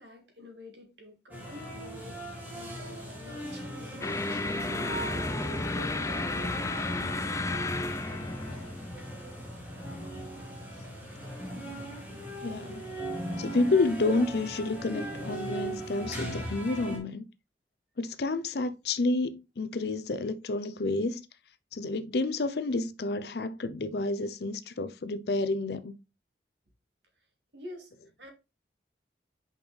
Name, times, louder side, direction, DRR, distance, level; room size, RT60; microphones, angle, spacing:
voice 1, 0.0-8.4 27.5-28.3, left 1 dB, 80° right, 2.2 m, -49 dB
sound 1, 1.3-17.0, right 1 dB, 10° right, 1.9 m, -39 dB
sound 2, 4.0-10.5, left 2 dB, 15° left, 0.4 m, -33 dB
voice 2, 12.4-12.8 13.4-17.2 18.0-21.2 21.7-25.9, left 2 dB, 65° left, 0.6 m, -30 dB
6.3 x 5.2 x 3.2 m
head